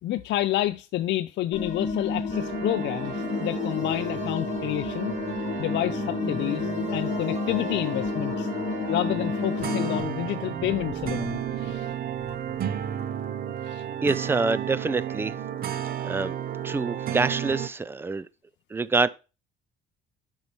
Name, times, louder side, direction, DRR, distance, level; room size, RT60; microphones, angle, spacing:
voice 1, 0.0-5.1 5.6-8.5 8.9-11.9 13.6-13.8, left 14 dB, 65° left, 0.4 m, -29 dB
sound 1, 1.5-10.0, left 4 dB, 35° left, 1.8 m, -31 dB
sound 2, 2.3-17.7, right 9 dB, 50° right, 0.6 m, -33 dB
sound 3, 3.8-13.0, right 3 dB, 35° right, 1.3 m, -43 dB
voice 2, 14.0-15.4 16.0-16.3 16.6-18.3 18.7-19.1, right 3 dB, 10° right, 0.3 m, -26 dB
8.3 x 5.5 x 3.0 m
cardioid pair, 145°, 20 cm